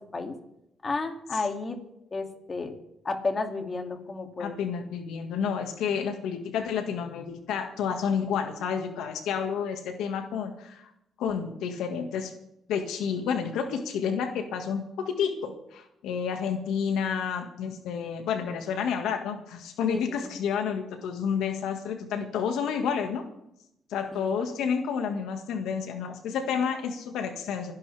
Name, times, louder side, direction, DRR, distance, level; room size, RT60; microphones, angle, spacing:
voice 1, 0.8-1.8 2.1-2.7 3.0-4.6 19.9-20.0 24.1-24.3, left 3 dB, 35° left, 4 dB, 2.6 m, -32 dB
voice 2, 4.4-10.9 11.2-12.3 12.7-23.2 23.9-27.7, left 7 dB, 85° left, 6 dB, 1.9 m, -30 dB
28.5 x 11.5 x 3.5 m, 0.81 s
cardioid pair, 90°, 0 cm